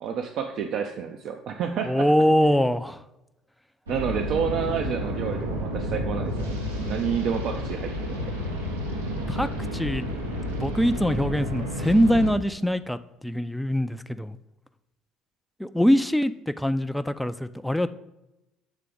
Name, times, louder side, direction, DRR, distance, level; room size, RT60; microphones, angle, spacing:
voice 1, 0.0-2.1 3.9-8.2, right 7 dB, 55° right, 5 dB, 0.5 m, -29 dB
voice 2, 1.9-3.0 9.3-10.1 10.6-13.0 13.2-14.4 15.6-17.9, equal, 5° left, 10 dB, 0.4 m, -23 dB
sound 1, 3.9-12.3, equal, 90° right, 0.8 m, -30 dB
7.2 x 3.7 x 5.1 m, 0.93 s
hypercardioid pair, 60°, 0 cm